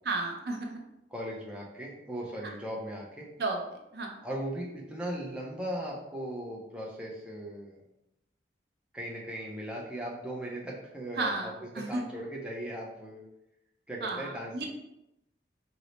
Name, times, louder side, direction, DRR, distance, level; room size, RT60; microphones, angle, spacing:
voice 1, 0.0-0.8 3.4-3.6 3.9-4.1 11.2-12.0 14.0-14.7, right 2 dB, 60° right, 2 dB, 0.5 m, -33 dB
voice 2, 1.1-3.3 4.2-7.8 8.9-13.2 13.9-14.7, right 1 dB, 5° right, -4 dB, 0.5 m, -38 dB
3.0 x 2.0 x 3.9 m, 0.88 s
head